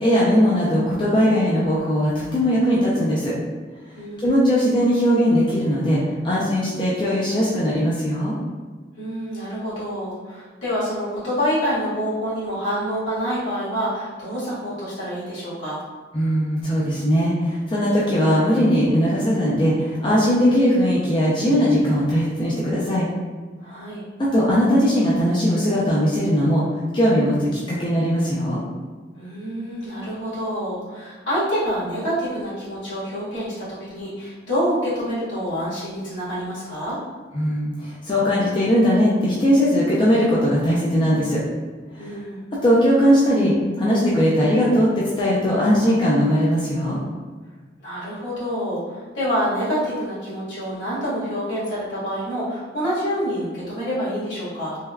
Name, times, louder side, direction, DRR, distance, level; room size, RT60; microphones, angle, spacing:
voice 1, 0.0-3.3 4.2-8.4 16.1-23.1 24.2-26.6 26.9-28.6 37.3-41.4 41.9-42.1 42.6-47.0, equal, 25° left, -7 dB, 0.4 m, -19 dB
voice 2, 3.9-4.5 9.0-15.8 23.6-24.0 29.2-37.0 42.0-42.4 47.8-54.8, equal, 75° left, -10 dB, 1.4 m, -27 dB
3.3 x 2.2 x 2.3 m, 1.4 s
head